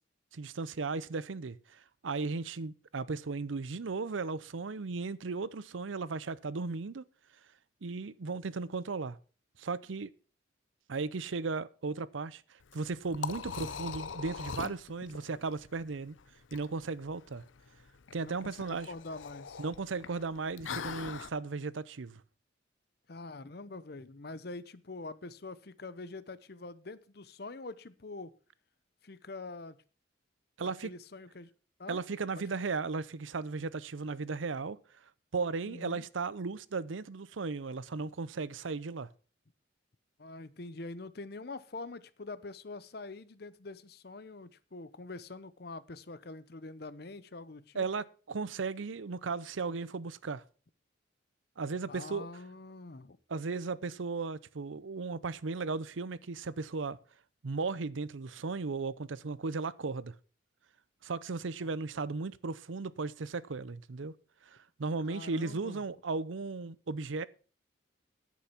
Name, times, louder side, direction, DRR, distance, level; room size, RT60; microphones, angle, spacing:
voice 1, 0.3-7.0 7.8-9.2 9.6-10.1 10.9-12.4 12.7-16.2 16.5-17.4 18.1-18.9 19.6-22.2 30.6-30.9 31.9-34.8 35.3-39.1 47.7-50.4 51.6-52.3 53.3-57.0 57.4-60.2 61.0-64.1 64.5-67.3, right 4 dB, 90° right, 0.6 m, -36 dB
Liquid, 12.6-21.3, left 6 dB, 90° left, 0.6 m, -42 dB
voice 2, 13.6-14.0 18.2-19.6 23.1-28.3 29.0-29.8 30.6-31.5 31.8-32.0 32.4-32.5 35.6-36.0 40.2-47.9 51.9-53.2 61.6-61.7 65.0-65.8, left 3 dB, 55° left, 0.8 m, -45 dB
10.0 x 8.5 x 5.8 m
head